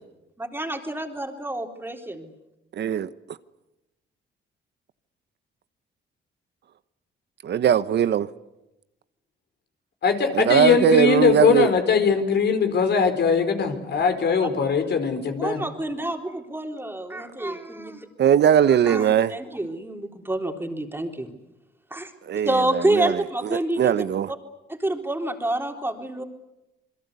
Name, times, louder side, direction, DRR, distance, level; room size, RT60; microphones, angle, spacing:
voice 1, 0.4-2.3 14.4-14.5 15.4-18.1 18.7-21.3 21.9-22.1 22.5-23.9 24.3-24.4 24.7-26.2, right 1 dB, 10° right, 3.8 m, -28 dB
voice 2, 2.8-3.1 7.4-8.3 10.3-11.7 18.2-19.3 22.2-23.2 23.5-24.3, right 9 dB, 60° right, 1.0 m, -20 dB
voice 3, 10.0-15.6, left 5 dB, 60° left, 4.7 m, -21 dB
27.5 x 22.0 x 8.3 m
cardioid pair, 90°, 20 cm